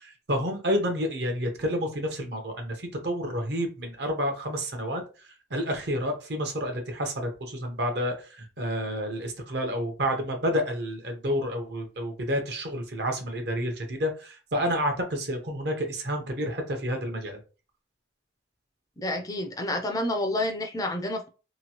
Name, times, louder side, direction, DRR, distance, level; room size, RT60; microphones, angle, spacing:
voice 1, 0.0-2.7 3.0-5.0 5.5-17.4, equal, 60° right, 4 dB, 0.8 m, -29 dB
voice 2, 19.0-21.3, left 1 dB, 20° left, 5 dB, 0.4 m, -29 dB
2.9 x 2.3 x 2.8 m, 0.33 s
head